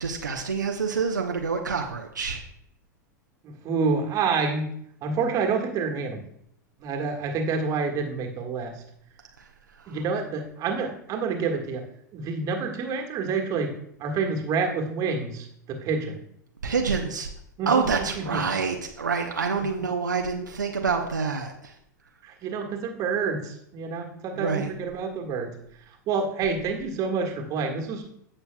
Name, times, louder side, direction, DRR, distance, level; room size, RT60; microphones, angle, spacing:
voice 1, 0.0-2.4 9.8-9.9 16.6-17.3 17.7-21.7 24.3-24.7, right 5 dB, 80° right, 3 dB, 0.8 m, -27 dB
voice 2, 3.4-4.6 5.0-6.2 6.8-8.7 9.9-11.8 12.1-13.7 14.0-16.2 17.6-17.7 18.1-18.4 22.2-25.5 26.1-28.0, right 5 dB, 35° right, 2 dB, 1.7 m, -28 dB
16.5 x 6.8 x 2.3 m, 0.73 s
figure-of-eight pair, 90°, 10 cm